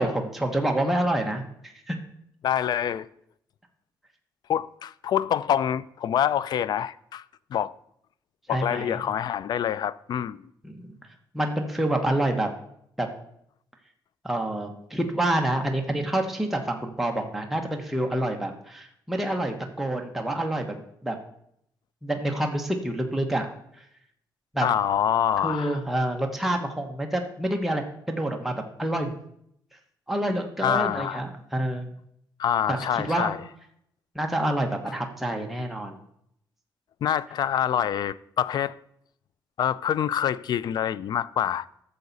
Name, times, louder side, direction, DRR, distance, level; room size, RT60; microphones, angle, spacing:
voice 1, 0.0-2.0 8.5-9.0 10.6-11.0 11.3-12.5 13.0-13.1 14.2-21.2 22.0-23.5 23.8-23.9 24.5-24.7 25.4-28.5 28.8-29.2 30.1-31.9 32.7-33.3 34.1-36.0, right 1 dB, 5° right, 1.1 m, -27 dB
voice 2, 2.4-3.1 4.5-7.2 7.5-7.7 8.5-10.4 24.6-25.8 30.6-31.2 32.4-33.4 37.0-38.8 39.6-41.7, left 9 dB, 60° left, 0.4 m, -26 dB
13.0 x 7.0 x 4.1 m
cardioid pair, 120°, 8 cm